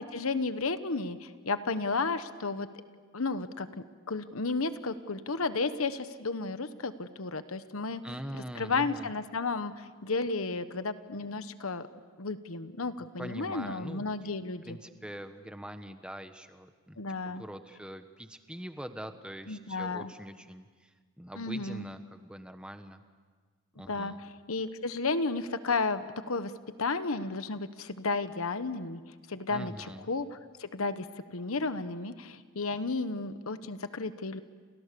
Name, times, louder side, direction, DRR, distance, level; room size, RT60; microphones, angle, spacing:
voice 1, 0.0-2.7 3.1-3.7 4.1-8.0 8.6-11.9 12.2-14.8 17.0-17.4 19.5-20.1 21.4-21.9 23.8-24.1 24.5-26.5 26.8-29.0 29.3-29.7 30.1-30.3 30.6-31.1 31.3-34.4, left 3 dB, 75° left, 11 dB, 1.1 m, -33 dB
voice 2, 8.0-9.1 13.2-14.3 14.6-23.0 23.7-24.2 29.5-30.1, equal, 5° right, 8 dB, 1.2 m, -43 dB
29.5 x 29.5 x 6.9 m, 1.5 s
head